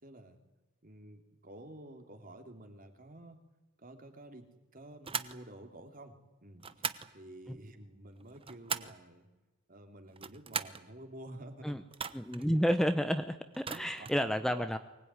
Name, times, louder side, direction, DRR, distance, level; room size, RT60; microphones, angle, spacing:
voice 1, 0.0-0.4 0.8-3.4 3.8-4.5 4.7-6.9 7.1-9.3 9.7-11.8 12.4-12.5 13.7-14.6, right 1 dB, 40° right, 5 dB, 3.2 m, -51 dB
sound 1, 5.0-5.4 6.6-7.1 8.2-9.0 10.1-10.8 11.9-12.4 13.5-14.2, right 6 dB, 25° right, 1.0 m, -39 dB
voice 2, 12.1-14.8, equal, ahead, 9 dB, 0.8 m, -30 dB
24.0 x 20.0 x 9.8 m, 1.1 s
head